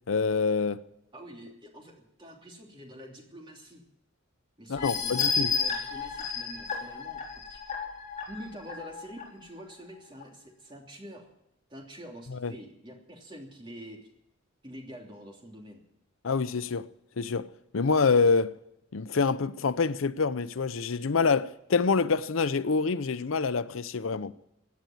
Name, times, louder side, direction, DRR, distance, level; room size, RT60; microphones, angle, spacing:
voice 1, 0.1-0.8 4.7-5.5 12.3-12.5 16.2-16.9 17.2-17.5 17.7-18.5 18.9-24.3, left 4 dB, 80° left, 0.6 m, -26 dB
voice 2, 1.1-3.8 4.6-7.2 7.5-7.8 8.3-11.3 11.7-14.0 14.6-15.8, equal, 25° right, 3.1 m, -46 dB
sound 1, 4.8-9.2 9.7-9.8 10.2-10.3, left 5 dB, 35° left, 4.0 m, -32 dB
17.0 x 9.5 x 8.7 m
head